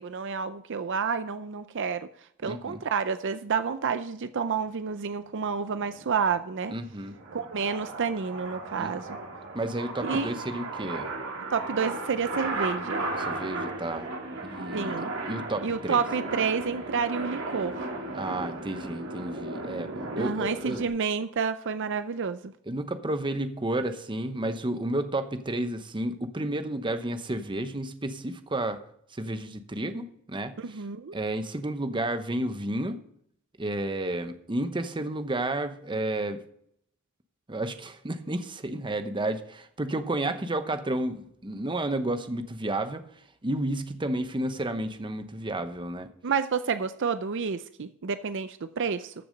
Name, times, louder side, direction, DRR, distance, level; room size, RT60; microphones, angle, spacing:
voice 1, 0.0-2.1 2.4-6.7 7.3-9.1 10.0-10.4 11.5-13.1 14.7-15.1 15.6-17.9 20.2-22.5 30.6-31.1 46.2-49.1, right 5 dB, 60° right, 11 dB, 0.6 m, -29 dB
voice 2, 2.4-2.8 6.7-7.2 8.8-8.9 9.5-11.1 13.2-14.1 14.4-16.0 18.1-20.8 22.7-28.8 29.1-30.8 31.1-33.0 33.6-36.4 37.5-43.1 43.4-46.1, right 1 dB, 25° right, 9 dB, 0.9 m, -31 dB
sound 1, 5.5-20.9, right 2 dB, 85° right, 3.0 m, -35 dB
14.0 x 6.9 x 5.2 m, 0.68 s
head